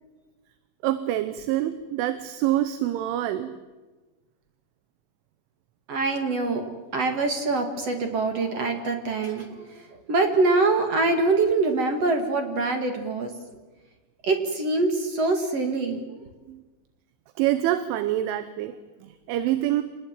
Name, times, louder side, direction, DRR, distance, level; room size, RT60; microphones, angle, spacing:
voice 1, 0.8-3.5 16.5-16.6 17.4-19.8, right 13 dB, 80° right, 12 dB, 3.4 m, -26 dB
voice 2, 5.9-13.3 14.2-16.0, right 3 dB, 50° right, 5 dB, 2.1 m, -24 dB
27.5 x 19.5 x 9.1 m, 1.2 s
omnidirectional pair, 5.7 m